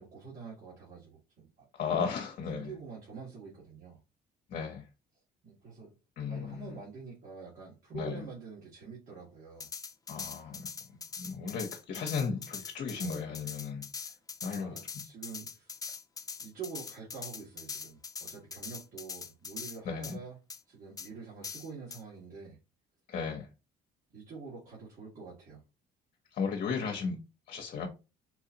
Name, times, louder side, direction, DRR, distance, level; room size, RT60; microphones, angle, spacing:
voice 1, 0.0-1.7 2.5-4.0 5.4-5.9 6.3-9.7 14.4-15.7 16.4-20.4 20.7-22.6 24.1-25.6, right 5 dB, 55° right, 1.9 m, -46 dB
voice 2, 1.7-2.7 4.5-4.8 6.2-6.7 7.9-8.2 10.1-13.8 14.4-14.7 19.9-20.2 23.1-23.5 26.3-27.2 27.5-27.9, left 5 dB, 55° left, 0.8 m, -35 dB
sound 1, 9.6-19.8 20.0-20.2 20.5-20.6 21.0-21.1 21.4-22.0, left 5 dB, 20° left, 0.4 m, -42 dB
4.4 x 2.4 x 2.8 m
cardioid pair, 110°, 17 cm